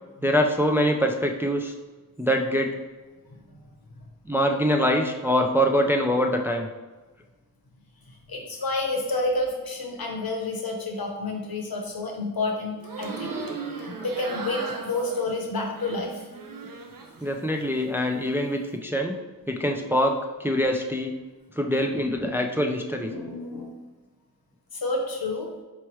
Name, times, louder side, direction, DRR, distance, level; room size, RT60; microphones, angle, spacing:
voice 1, 0.2-1.7 2.2-2.8 4.3-6.7 17.2-19.2 19.5-21.1 21.6-23.1, equal, 5° right, 3 dB, 0.3 m, -24 dB
voice 2, 3.3-3.7 4.0-4.1 8.1-13.4 13.8-16.3 23.1-23.7 24.7-25.5, left 2 dB, 75° left, 0 dB, 0.8 m, -30 dB
sound 1, 12.8-17.2 17.6-18.3, right 4 dB, 65° right, 0.6 m, -37 dB
4.5 x 3.1 x 3.0 m, 1.2 s
wide cardioid pair, 45°, 36 cm